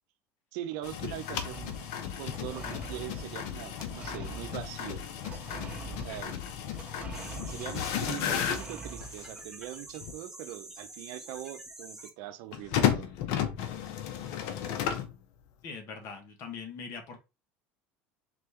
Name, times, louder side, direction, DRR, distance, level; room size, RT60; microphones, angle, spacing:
voice 1, 0.5-1.8 2.2-5.0 5.6-6.4 7.4-13.1, right 13 dB, 75° right, 0.7 m, -42 dB
sound 1, 0.8-9.3 10.0-10.1 12.5-15.2, left 9 dB, 75° left, 0.8 m, -33 dB
sound 2, 1.5-9.4, right 4 dB, 20° right, 1.6 m, -46 dB
sound 3, 7.1-12.1, right 2 dB, 5° right, 1.3 m, -47 dB
voice 2, 15.6-17.2, left 5 dB, 55° left, 1.5 m, -42 dB
4.3 x 3.4 x 3.0 m
supercardioid pair, 105°, 6 cm